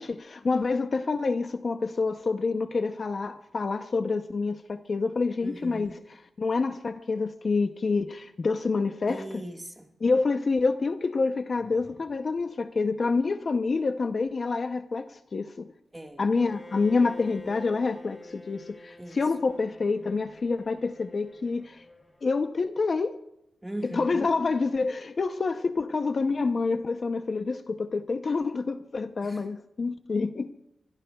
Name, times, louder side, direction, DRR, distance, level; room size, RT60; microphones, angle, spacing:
voice 1, 0.0-6.0 6.4-9.4 10.0-15.7 16.2-21.8 22.2-23.2 23.9-30.5, left 4 dB, 40° left, 0.6 m, -27 dB
voice 2, 5.4-6.0 9.1-9.9 11.6-12.0 15.9-16.2 19.0-19.2 23.6-24.3 29.2-29.5, right 1 dB, 10° right, 1.5 m, -39 dB
Bowed string instrument, 16.3-22.3, left 2 dB, 15° left, 2.3 m, -47 dB
26.0 x 22.0 x 2.3 m
wide cardioid pair, 145°, 0 cm